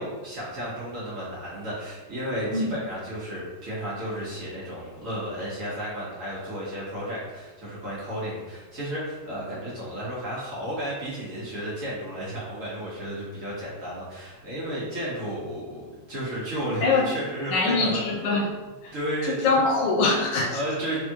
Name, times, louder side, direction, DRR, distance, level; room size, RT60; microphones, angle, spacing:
voice 1, 0.0-18.0 18.9-19.4 20.5-21.0, equal, 50° right, -8 dB, 1.5 m, -33 dB
voice 2, 17.5-18.6 18.8-18.9 19.3-20.6, left 3 dB, 85° left, 1 dB, 1.3 m, -23 dB
3.5 x 3.5 x 2.8 m, 1.2 s
omnidirectional pair, 1.9 m